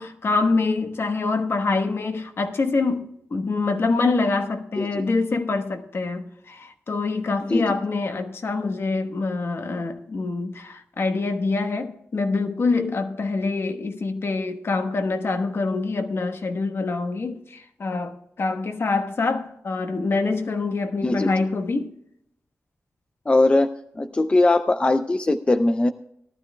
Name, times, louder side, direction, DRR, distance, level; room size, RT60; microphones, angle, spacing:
voice 1, 0.0-21.9, left 3 dB, 55° left, 1.2 m, -25 dB
voice 2, 4.8-5.1 7.5-7.8 21.0-21.3 23.3-23.7 24.0-25.9, left 2 dB, 25° left, 0.5 m, -20 dB
18.0 x 12.5 x 2.3 m
wide cardioid pair, 105°, 5 cm